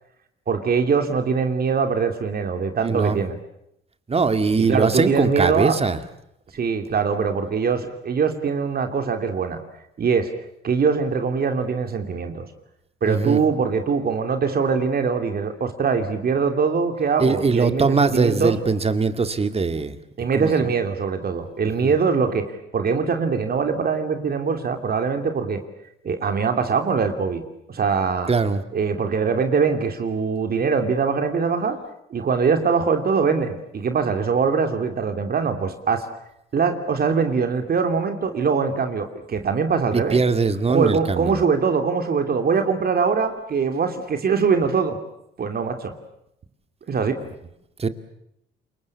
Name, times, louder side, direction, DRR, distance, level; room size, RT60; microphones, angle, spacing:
voice 1, 0.5-3.4 4.6-5.7 6.5-9.6 10.0-10.3 10.6-12.5 13.0-18.5 20.2-25.6 26.0-27.4 27.7-28.3 28.7-31.8 32.1-36.0 36.5-40.2 40.7-45.0 45.4-45.9 46.9-47.2, right 5 dB, 50° right, 7 dB, 2.9 m, -22 dB
voice 2, 2.8-3.2 4.1-6.0 13.0-13.4 17.2-20.0 20.3-20.7 21.6-21.9 28.3-28.6 39.9-41.4 47.8-47.9, right 4 dB, 30° right, 10 dB, 2.2 m, -21 dB
27.5 x 23.0 x 8.6 m, 0.78 s
cardioid pair, 90°, 20 cm